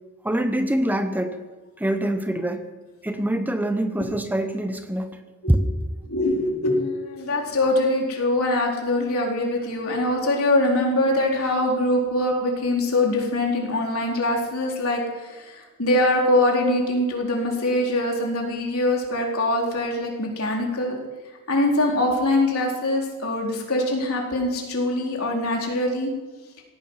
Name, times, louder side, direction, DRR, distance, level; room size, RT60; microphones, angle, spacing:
voice 1, 0.2-1.4 1.8-2.7 3.0-5.2 5.5-5.6, right 1 dB, 10° right, 0.8 m, -24 dB
voice 2, 6.1-21.0 21.5-26.1, left 1 dB, 75° left, 4.1 m, -23 dB
17.5 x 14.5 x 5.7 m
head